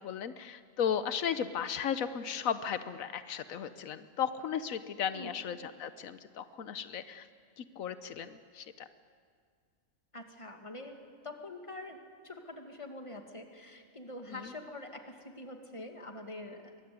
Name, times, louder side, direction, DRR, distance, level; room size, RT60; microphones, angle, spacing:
voice 1, 0.0-7.3 7.6-8.9 14.3-14.5, left 8 dB, 85° left, 12 dB, 1.2 m, -35 dB
voice 2, 10.1-11.0 11.2-12.0 12.2-16.7, left 2 dB, 25° left, 4 dB, 2.3 m, -45 dB
23.5 x 20.5 x 9.5 m, 2.1 s
omnidirectional pair, 1.4 m